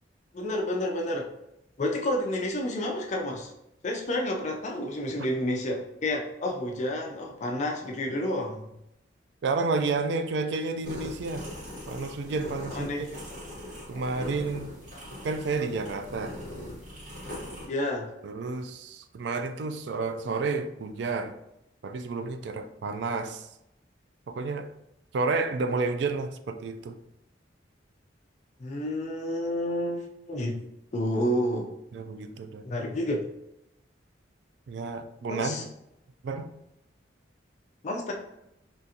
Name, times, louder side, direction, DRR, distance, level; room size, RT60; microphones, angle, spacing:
voice 1, 0.3-1.3 1.8-3.5 3.8-8.7 12.7-13.1 17.7-18.1 28.6-30.0 30.3-30.6 30.9-31.7 32.6-33.2 35.3-35.6 37.8-38.1, left 1 dB, 40° left, 1 dB, 0.4 m, -30 dB
voice 2, 9.4-11.5 11.9-13.1 13.9-14.7 15.2-16.4 18.2-21.3 21.8-23.5 24.3-24.7 25.1-27.0 31.9-32.6 34.7-35.6 36.2-36.5, right 3 dB, 65° right, 8 dB, 0.3 m, -30 dB
sound 1, 10.8-17.7, left 1 dB, 40° right, 1.1 m, -40 dB
3.7 x 2.4 x 2.7 m, 0.86 s
head